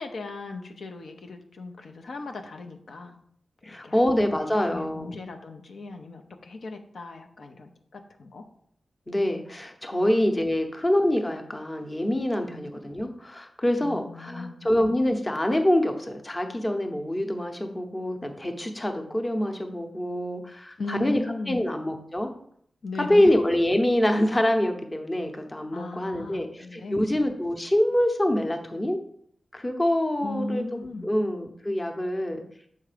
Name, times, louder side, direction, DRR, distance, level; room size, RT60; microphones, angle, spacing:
voice 1, 0.0-3.2 3.6-4.2 4.7-8.4 12.5-12.7 13.8-14.7 20.8-21.7 22.8-23.3 25.7-27.3 30.2-31.1, left 3 dB, 75° left, 5 dB, 0.6 m, -37 dB
voice 2, 3.6-5.1 9.1-21.2 21.5-22.3 23.1-29.0 29.5-32.4, left 1 dB, 20° left, 5 dB, 0.8 m, -25 dB
6.7 x 3.5 x 5.0 m, 0.65 s
wide cardioid pair, 90°, 0 cm